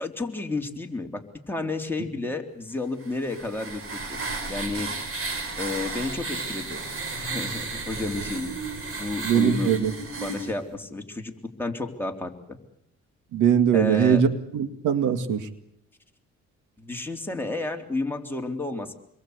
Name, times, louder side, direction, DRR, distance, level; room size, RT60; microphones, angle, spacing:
voice 1, 0.0-4.2 4.5-4.9 5.6-6.8 7.1-8.5 9.0-9.7 10.2-11.3 11.6-12.6 13.7-14.2 16.8-18.9, left 2 dB, 5° left, 2 dB, 3.6 m, -31 dB
sound 1, 3.0-10.5, right 3 dB, 45° right, 5.8 m, -33 dB
voice 2, 9.2-9.9 13.3-15.5, right 8 dB, 85° right, 9 dB, 2.2 m, -21 dB
27.5 x 22.0 x 8.2 m, 0.73 s
cardioid pair, 90°, 30 cm